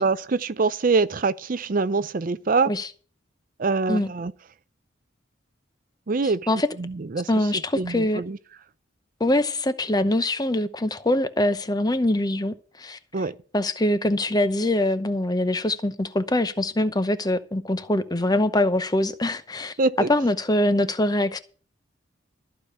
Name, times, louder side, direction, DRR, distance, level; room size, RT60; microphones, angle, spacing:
voice 1, 0.0-2.7 3.6-4.3 6.1-6.4 6.8-7.5 7.8-8.4 13.1-13.4 19.8-20.1, right 4 dB, 45° right, 0.5 m, -24 dB
voice 2, 7.3-8.2 9.2-13.0 13.5-19.7 20.1-21.4, left 1 dB, 20° left, 0.8 m, -23 dB
14.0 x 5.1 x 9.1 m
head